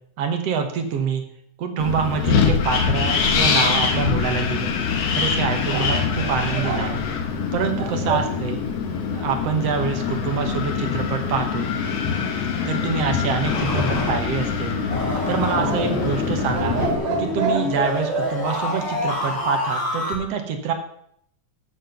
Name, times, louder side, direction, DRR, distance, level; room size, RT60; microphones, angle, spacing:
voice 1, 0.2-1.2 1.6-4.7 5.2-7.0 7.5-8.6 9.1-11.7 12.7-14.8 15.3-16.8 17.2-20.7, right 6 dB, 60° right, 5 dB, 2.0 m, -25 dB
Wind, 1.8-16.9, left 6 dB, 60° left, 2.0 m, -24 dB
sound 1, 5.7-8.3 13.7-14.6 15.6-18.3, right 6 dB, 85° right, 3.3 m, -29 dB
sound 2, 13.4-20.1, left 2 dB, 20° left, 3.6 m, -27 dB
7.8 x 7.0 x 6.9 m, 0.69 s
omnidirectional pair, 3.4 m